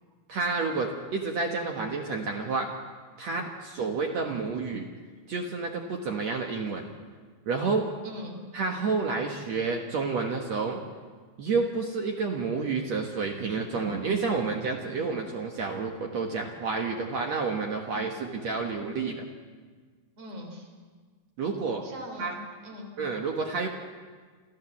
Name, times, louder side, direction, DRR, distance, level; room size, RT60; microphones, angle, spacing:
voice 1, 0.3-2.7 3.2-4.9 5.3-6.9 7.5-7.9 8.5-10.8 11.4-19.3 21.4-21.8 22.2-22.4 23.0-23.7, right 4 dB, 65° right, 2 dB, 1.8 m, -29 dB
voice 2, 8.0-8.4 20.2-20.7 21.8-22.9, left 1 dB, 40° right, 2 dB, 4.4 m, -41 dB
27.5 x 14.0 x 7.2 m, 1.5 s
omnidirectional pair, 4.9 m